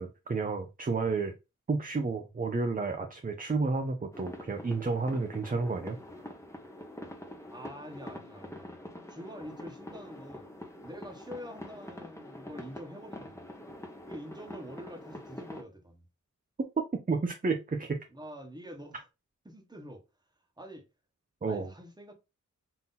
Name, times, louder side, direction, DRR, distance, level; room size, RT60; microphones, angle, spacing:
voice 1, 0.0-1.3 1.7-6.0 17.1-18.0 21.4-21.7, right 4 dB, 30° right, 0.6 m, -31 dB
sound 1, 4.1-15.6, left 1 dB, 10° left, 0.9 m, -45 dB
voice 2, 7.5-8.7 9.1-10.5 10.8-13.5 14.1-16.0 18.1-19.1 19.4-20.0 20.6-20.9 21.5-22.1, equal, 15° right, 1.2 m, -46 dB
3.8 x 2.8 x 4.0 m
wide cardioid pair, 90°, 30 cm